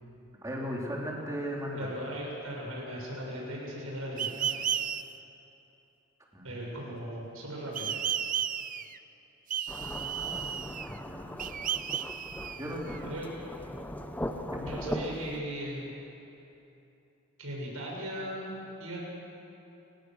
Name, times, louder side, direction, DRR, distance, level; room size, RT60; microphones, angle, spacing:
voice 1, 0.4-2.0 6.3-6.6 10.6-11.3 12.5-12.9 14.5-14.7, equal, 15° right, -3 dB, 3.7 m, -37 dB
voice 2, 1.8-4.7 6.4-7.9 12.9-13.3 14.6-15.9 17.4-19.0, equal, 80° right, -3 dB, 7.0 m, -38 dB
sound 1, 4.2-5.0 7.8-9.0 9.5-11.0 11.4-13.0, right 9 dB, 40° right, 0.5 m, -33 dB
Thunderstorm / Rain, 9.7-15.4, left 1 dB, 10° left, 0.8 m, -39 dB
30.0 x 17.0 x 6.5 m, 2.9 s
head